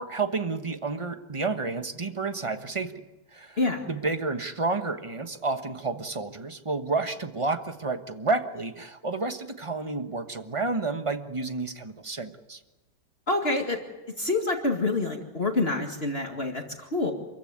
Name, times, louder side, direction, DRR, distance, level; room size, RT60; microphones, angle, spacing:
voice 1, 0.0-3.0 3.3-3.6 3.9-12.6, right 3 dB, 20° right, 8 dB, 1.1 m, -30 dB
voice 2, 13.3-13.8 14.2-17.1, left 2 dB, 35° left, 3 dB, 2.2 m, -27 dB
28.0 x 15.0 x 9.6 m, 1.1 s
omnidirectional pair, 1.9 m